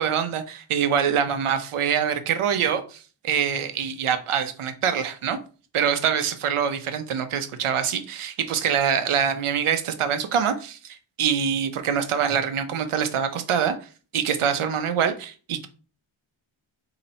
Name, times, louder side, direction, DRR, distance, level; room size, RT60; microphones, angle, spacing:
voice 1, 0.0-5.4 5.7-13.7 14.1-15.7, right 7 dB, 85° right, 9 dB, 0.8 m, -24 dB
4.1 x 2.9 x 4.2 m, 0.37 s
wide cardioid pair, 150°, 49 cm